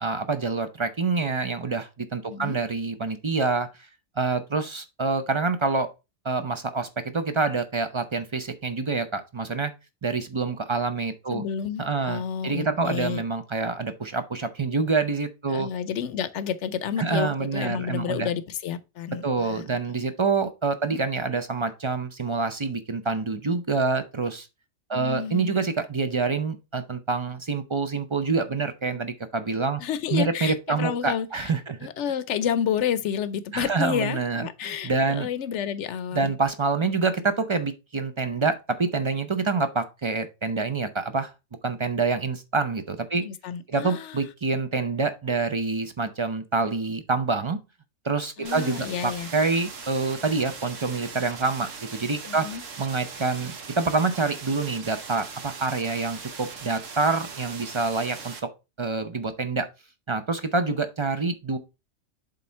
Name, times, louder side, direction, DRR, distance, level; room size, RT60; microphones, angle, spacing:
voice 1, 0.0-3.7 4.2-5.9 6.2-9.7 10.0-11.4 11.8-15.7 17.0-18.3 19.2-24.5 24.9-29.8 30.1-31.8 33.5-35.3 36.1-41.3 41.6-43.2 43.7-47.6 48.0-52.5 52.8-58.3 58.8-59.7 60.1-61.6, right 4 dB, 35° right, 0.5 m, -26 dB
voice 2, 11.3-13.2 15.5-19.6 20.9-21.0 24.9-25.5 29.8-31.5 31.8-36.3 43.2-44.3 48.4-49.3 52.3-52.6, left 8 dB, 70° left, 0.9 m, -30 dB
sound 1, 48.4-58.4, right 5 dB, 90° right, 1.5 m, -40 dB
7.7 x 3.6 x 4.2 m
omnidirectional pair, 1.3 m